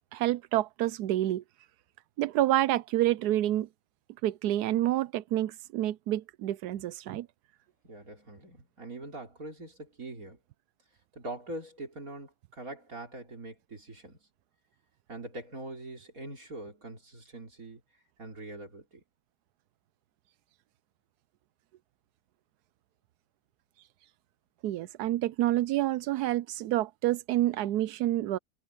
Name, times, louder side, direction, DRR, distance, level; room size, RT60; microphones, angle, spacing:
voice 1, 0.1-1.4 2.2-3.7 4.2-7.3 24.6-28.4, right 14 dB, 85° right, 1.1 m, -28 dB
voice 2, 7.8-10.4 11.1-14.2 15.1-17.8 18.2-19.0, right 2 dB, 60° right, 4.4 m, -43 dB
omnidirectional pair, 1.7 m